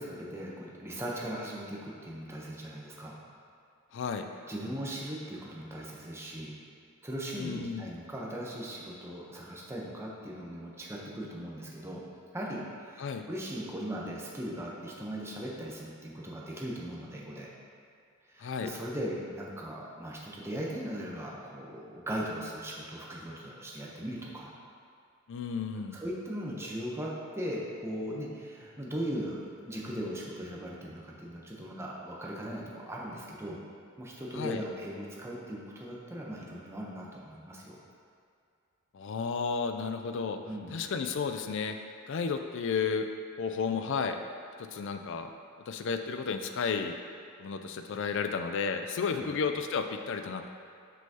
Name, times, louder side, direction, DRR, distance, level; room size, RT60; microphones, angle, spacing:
voice 1, 0.0-3.2 4.5-6.6 7.0-12.0 12.3-17.5 18.3-24.5 25.9-33.6 34.0-37.8 40.5-40.7 49.2-49.3, equal, 15° right, -4 dB, 0.7 m, -39 dB
voice 2, 3.9-4.3 7.3-7.9 13.0-13.3 18.4-18.7 25.3-26.0 34.3-34.6 38.9-40.4 40.7-41.8 42.1-43.1 43.4-44.2 44.6-45.3 45.7-47.0 47.4-50.5, left 5 dB, 65° left, 7 dB, 0.4 m, -32 dB
6.1 x 5.5 x 2.8 m, 2.4 s
head